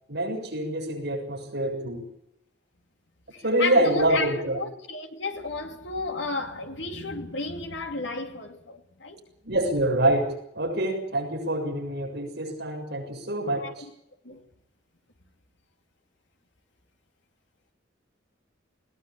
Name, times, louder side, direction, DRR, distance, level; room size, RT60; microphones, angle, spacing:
voice 1, 0.1-2.0 3.4-4.6 9.4-13.8, right 1 dB, 60° right, 7.0 m, -26 dB
voice 2, 3.3-9.3 13.6-13.9 14.2-14.4, left 3 dB, 70° left, 2.8 m, -33 dB
21.0 x 18.0 x 8.8 m
head